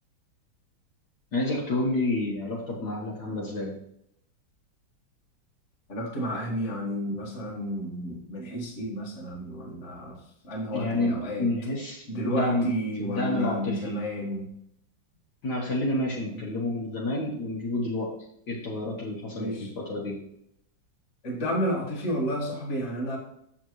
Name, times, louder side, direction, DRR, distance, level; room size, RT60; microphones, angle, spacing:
voice 1, 1.3-3.7 10.7-12.7 13.0-14.0 15.4-18.1 18.5-20.2, left 2 dB, 55° left, -4 dB, 1.8 m, -29 dB
voice 2, 5.9-11.5 12.1-14.5 16.3-16.5 19.3-19.7 21.2-23.2, equal, 35° left, -1 dB, 1.9 m, -31 dB
7.9 x 7.2 x 3.1 m, 0.74 s
omnidirectional pair, 2.2 m